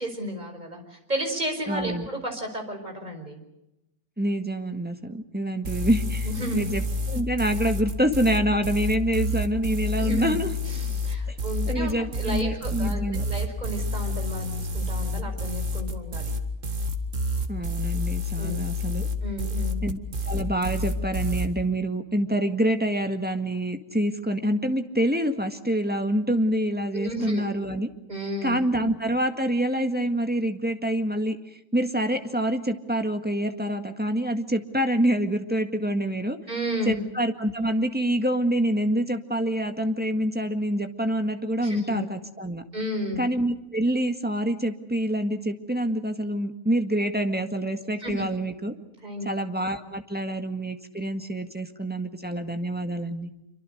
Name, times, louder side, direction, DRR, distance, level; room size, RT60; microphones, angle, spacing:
voice 1, 0.0-3.4 6.2-6.7 10.0-10.3 10.7-16.3 18.4-18.6 19.2-19.8 26.9-27.5 28.1-28.6 36.5-37.0 41.6-42.0 42.7-43.2 48.0-48.2 49.0-49.3, equal, 30° right, 4 dB, 5.4 m, -32 dB
voice 2, 1.7-2.1 4.2-10.5 11.3-11.4 11.7-13.2 17.5-19.1 19.8-20.0 20.3-27.9 28.4-31.4 31.7-36.4 36.9-42.6 43.2-48.7 49.3-53.3, right 1 dB, 5° right, 6 dB, 1.7 m, -26 dB
sound 1, 5.6-21.5, left 1 dB, 60° right, 2.3 m, -29 dB
27.0 x 24.5 x 6.5 m, 0.88 s
omnidirectional pair, 1.5 m